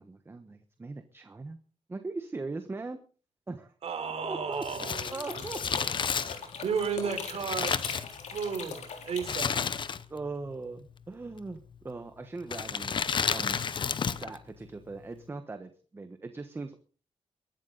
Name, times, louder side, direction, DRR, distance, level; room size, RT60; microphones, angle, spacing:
voice 1, 0.0-1.6 1.9-3.0 3.5-3.7 4.2-4.6 5.1-5.6 10.1-16.7, right 3 dB, 20° right, 8 dB, 1.2 m, -40 dB
voice 2, 3.8-5.4 6.6-7.8 8.3-9.5, right 6 dB, 65° right, 6 dB, 3.7 m, -33 dB
Crumpling crinkling, 4.6-8.6 9.2-10.3 10.5-10.6 11.4-11.8 12.4-14.4 14.6-14.7, left 6 dB, 45° left, 0.8 m, -31 dB
sound 1, 4.9-9.9, left 5 dB, 75° left, 3.7 m, -41 dB
22.0 x 12.0 x 4.0 m, 0.39 s
wide cardioid pair, 145°, 12 cm